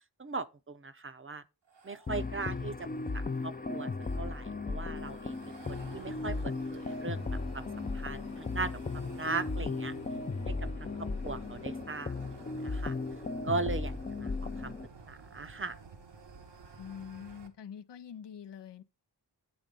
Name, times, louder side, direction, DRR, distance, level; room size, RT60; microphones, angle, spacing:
voice 1, 0.2-1.4 1.8-2.9 3.1-5.4 5.7-7.7 7.9-9.9 10.5-10.6 10.8-12.3 12.6-12.9 13.4-14.3 14.6-14.7 15.1-15.7, right 3 dB, 30° right, 0.6 m, -38 dB
sound 1, 1.7-17.5, right 4 dB, 85° right, 1.2 m, -52 dB
sound 2, 2.1-14.9, left 3 dB, 25° left, 0.5 m, -36 dB
sound 3, 6.8-11.9, left 7 dB, 40° left, 1.2 m, -54 dB
voice 2, 16.8-18.8, left 8 dB, 80° left, 0.6 m, -45 dB
8.8 x 3.6 x 5.1 m
cardioid pair, 45°, 41 cm